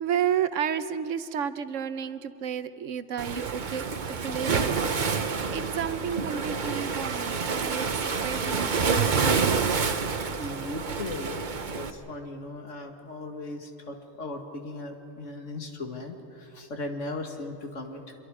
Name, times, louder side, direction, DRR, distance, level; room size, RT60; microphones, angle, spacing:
voice 1, 0.0-4.8 5.1-9.4, right 8 dB, 80° right, 12 dB, 1.1 m, -32 dB
Waves surf, 3.2-11.9, right 5 dB, 40° right, 1.0 m, -28 dB
voice 2, 10.3-18.1, left 2 dB, 75° left, 4 dB, 2.2 m, -38 dB
26.0 x 23.0 x 4.9 m, 2.9 s
omnidirectional pair, 1.3 m